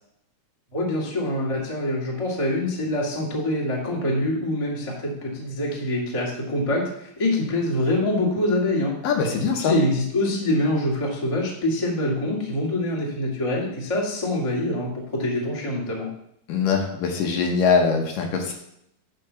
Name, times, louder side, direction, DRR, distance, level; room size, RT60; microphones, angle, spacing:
voice 1, 0.7-8.9 9.6-16.1, left 1 dB, 20° left, -3 dB, 0.8 m, -25 dB
voice 2, 9.0-9.8 16.5-18.5, left 5 dB, 70° left, 2 dB, 2.4 m, -22 dB
10.5 x 3.8 x 6.8 m, 0.76 s
omnidirectional pair, 4.4 m